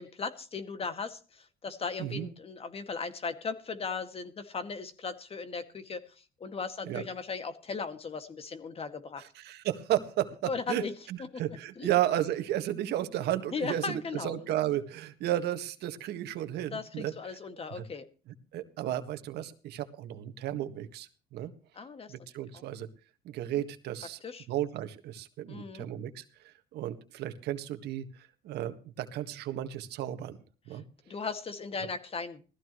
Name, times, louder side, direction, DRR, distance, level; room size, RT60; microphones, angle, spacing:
voice 1, 0.0-9.2 10.5-10.9 11.3-11.4 11.8-11.9 13.5-14.3 16.7-18.1 21.8-22.1 24.2-24.5 25.5-25.9 31.1-32.4, left 5 dB, 35° left, 9 dB, 2.1 m, -37 dB
voice 2, 2.0-2.3 6.8-7.1 9.2-17.4 17.7-17.8 18.3-21.5 22.1-22.9 23.2-24.2 24.5-30.4 30.7-30.8, right 12 dB, 75° right, 9 dB, 1.7 m, -33 dB
19.0 x 14.5 x 3.1 m, 0.37 s
cardioid pair, 110°, 17 cm